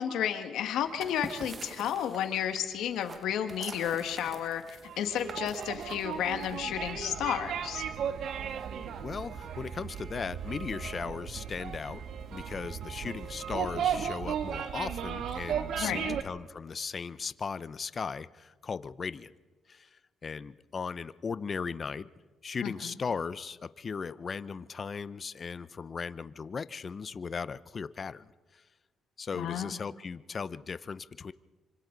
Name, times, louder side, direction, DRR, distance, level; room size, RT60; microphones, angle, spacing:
voice 1, 0.0-4.6 5.0-7.8 15.8-16.2 22.6-22.9 29.3-29.7, left 9 dB, 85° left, 7 dB, 1.7 m, -32 dB
sound 1, 0.8-6.9, right 4 dB, 35° right, 1.5 m, -46 dB
sound 2, 4.8-16.2, right 8 dB, 70° right, 1.4 m, -36 dB
voice 2, 9.0-12.0 12.3-19.3 19.7-22.1 22.4-28.3 28.5-28.6 29.2-31.3, left 5 dB, 40° left, 15 dB, 0.7 m, -37 dB
26.0 x 25.0 x 4.0 m, 1.3 s
cardioid pair, 90°, 0 cm